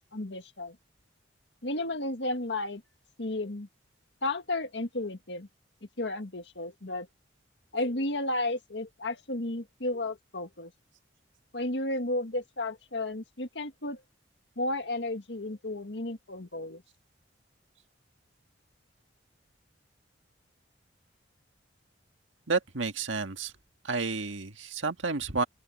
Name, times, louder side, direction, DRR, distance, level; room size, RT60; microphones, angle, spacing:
voice 1, 0.1-0.8 1.6-2.8 3.2-3.7 4.2-5.5 6.0-7.1 7.7-10.7 11.5-14.0 14.6-16.8, left 2 dB, 65° left, 1.9 m, -33 dB
voice 2, 22.5-23.5 23.8-25.4, right 4 dB, 85° right, 1.8 m, -30 dB
open air
head